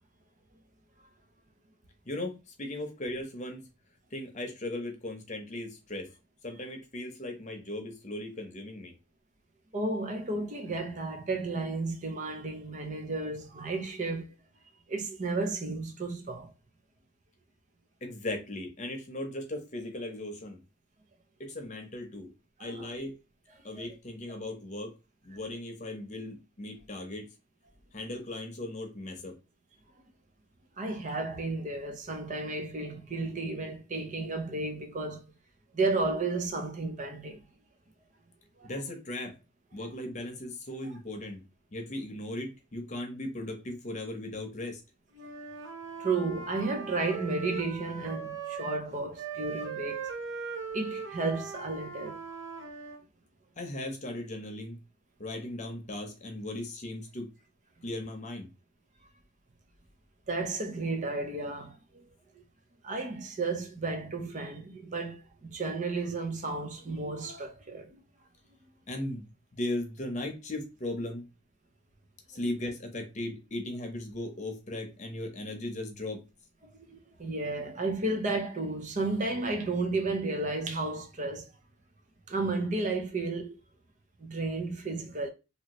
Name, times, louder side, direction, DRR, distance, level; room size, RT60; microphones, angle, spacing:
voice 1, 2.1-3.6 4.1-6.1 6.4-8.9 18.0-20.6 21.4-22.3 22.6-23.1 23.6-24.9 25.2-27.3 27.9-29.3 38.6-39.4 39.7-41.4 41.7-44.8 53.6-54.8 55.2-57.3 57.8-58.5 68.9-71.3 72.3-76.3, left 1 dB, 35° left, 0.8 m, -37 dB
voice 2, 9.7-14.3 14.9-16.5 22.6-22.9 23.6-23.9 30.8-35.3 35.7-37.4 38.6-38.7 46.0-50.1 50.7-52.4 60.3-62.1 62.8-68.0 76.9-81.5 82.3-83.6 84.2-85.3, right 3 dB, 40° right, 0.6 m, -33 dB
Wind instrument woodwind instrument, 45.1-48.9 49.2-53.0, right 5 dB, 70° right, 1.0 m, -39 dB
2.9 x 2.7 x 3.0 m
head